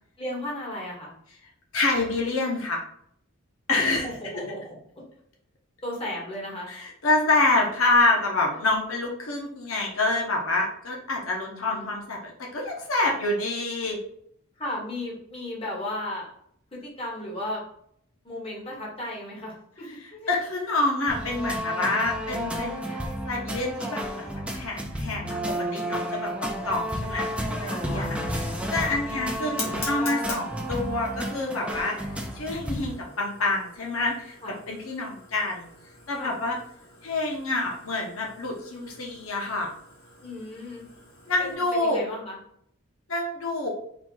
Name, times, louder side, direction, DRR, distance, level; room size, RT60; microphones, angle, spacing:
voice 1, 0.2-1.1 3.7-4.8 5.8-6.7 11.4-11.9 14.6-16.3 16.7-17.6 18.2-19.8 20.1-20.3 27.6-28.1 28.8-29.0 34.4-34.6 36.2-36.3 40.2-40.9 41.4-42.4, left 1 dB, 25° left, -4 dB, 1.3 m, -35 dB
voice 2, 1.7-2.8 3.7-4.3 6.7-14.0 20.3-23.0 23.3-28.1 28.7-32.0 32.3-34.4 34.7-35.7 36.1-36.6 37.0-39.7 41.3-42.0 43.1-43.7, left 2 dB, 80° left, 0 dB, 0.8 m, -27 dB
sound 1, 21.1-32.9, equal, 5° right, 0.5 m, -31 dB
Fire, 25.8-41.6, left 2 dB, 65° left, 1.6 m, -44 dB
4.3 x 2.3 x 4.4 m, 0.68 s
head